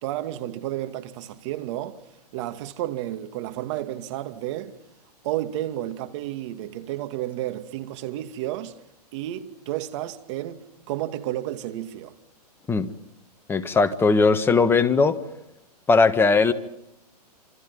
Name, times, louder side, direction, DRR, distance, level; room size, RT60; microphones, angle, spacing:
voice 1, 0.0-2.0 2.3-4.7 5.2-8.7 9.1-10.6 10.9-12.1, right 13 dB, 45° right, 2.4 m, -31 dB
voice 2, 13.5-15.2 15.9-16.5, left 4 dB, 10° left, 1.5 m, -19 dB
27.5 x 27.5 x 5.5 m
hypercardioid pair, 135°, 21 cm